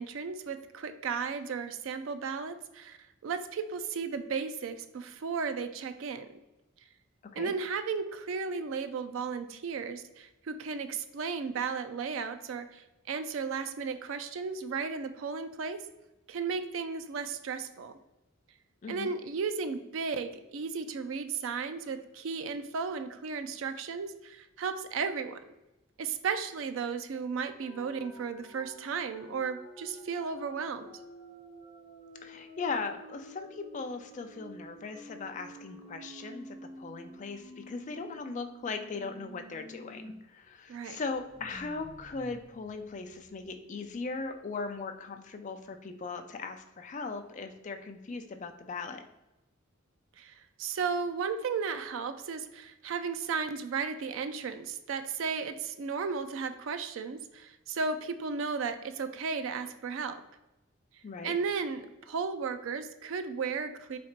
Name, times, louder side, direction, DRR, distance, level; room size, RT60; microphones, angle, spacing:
voice 1, 0.0-3.0 3.2-6.4 7.4-15.8 16.3-17.9 18.9-25.4 26.0-31.0 40.7-41.0 50.2-60.2 61.2-64.0, right 5 dB, 75° right, 9 dB, 0.4 m, -34 dB
sound 1, 27.6-40.1 40.4-40.5 40.9-43.6, equal, 10° right, 1.4 m, -50 dB
voice 2, 32.2-49.0 61.0-61.3, left 4 dB, 35° left, 6 dB, 0.4 m, -39 dB
4.2 x 2.4 x 4.4 m, 0.99 s
head